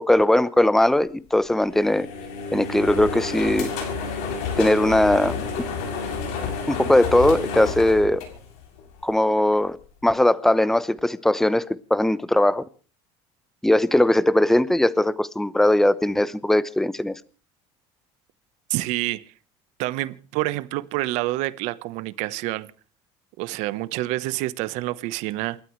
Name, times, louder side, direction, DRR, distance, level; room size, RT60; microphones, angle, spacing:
voice 1, 0.0-2.1 2.5-3.7 4.6-5.4 6.7-8.2 9.0-9.8 10.0-12.6 13.6-17.2, left 1 dB, 5° left, 0.9 m, -19 dB
sound 1, 1.6-8.9, left 5 dB, 70° left, 6.9 m, -30 dB
voice 2, 18.7-19.3 19.8-22.7 23.4-25.6, right 18 dB, 65° right, 1.1 m, -27 dB
28.5 x 13.0 x 3.2 m
supercardioid pair, 130°, 13 cm